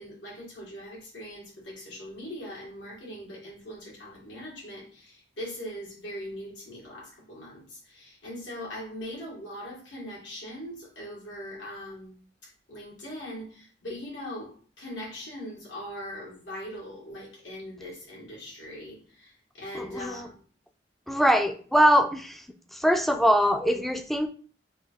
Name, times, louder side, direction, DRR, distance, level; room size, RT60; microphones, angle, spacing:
voice 1, 0.0-12.2 12.7-20.4, equal, 85° left, -4 dB, 1.9 m, -41 dB
voice 2, 19.7-20.2 21.1-22.4 22.7-24.3, equal, ahead, 7 dB, 0.3 m, -22 dB
3.6 x 2.6 x 4.4 m, 0.43 s
head